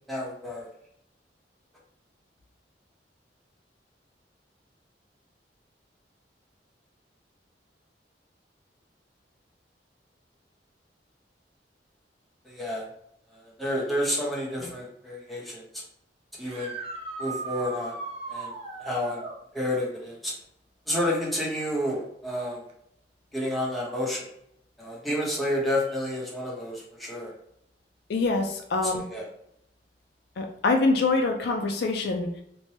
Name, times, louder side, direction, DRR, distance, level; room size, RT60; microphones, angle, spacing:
voice 1, 0.1-0.7 12.4-12.8 13.3-15.8 16.4-16.7 17.2-18.0 18.3-18.5 18.8-19.2 19.5-20.3 20.9-22.6 23.3-24.3 24.8-27.3 28.8-29.3, left 1 dB, ahead, -5 dB, 0.8 m, -30 dB
sound 1, 16.4-19.4 22.7-22.8 24.8-24.9 31.2-31.3, right 3 dB, 35° right, 0.5 m, -37 dB
voice 2, 28.1-29.0 30.4-32.4, left 3 dB, 65° left, 4 dB, 0.4 m, -25 dB
3.2 x 2.1 x 2.7 m, 0.74 s
head